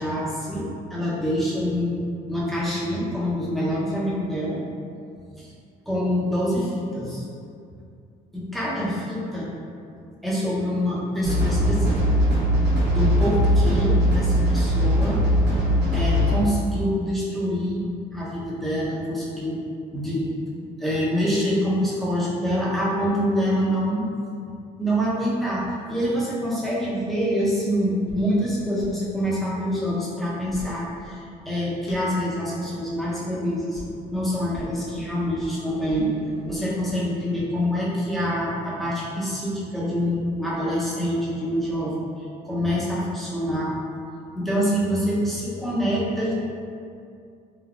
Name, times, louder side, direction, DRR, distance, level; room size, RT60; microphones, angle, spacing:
voice 1, 0.0-2.0 2.3-4.6 5.4-5.5 5.9-7.3 8.3-9.5 10.2-12.2 12.9-15.2 15.9-19.6 19.9-24.0 24.8-33.8 34.1-36.1 36.5-41.9 42.4-43.8 44.3-46.3, equal, ahead, -8 dB, 0.7 m, -26 dB
sound 1, 11.2-16.4, equal, 80° right, 1.0 m, -20 dB
sound 2, 28.1-28.3 28.6-29.1 30.2-31.5 31.9-32.0 33.0-33.4 33.7-34.0 34.5-34.8 35.2-36.7, left 1 dB, 70° left, 1.0 m, -39 dB
3.4 x 2.2 x 2.4 m, 2.4 s
cardioid pair, 110°, 17 cm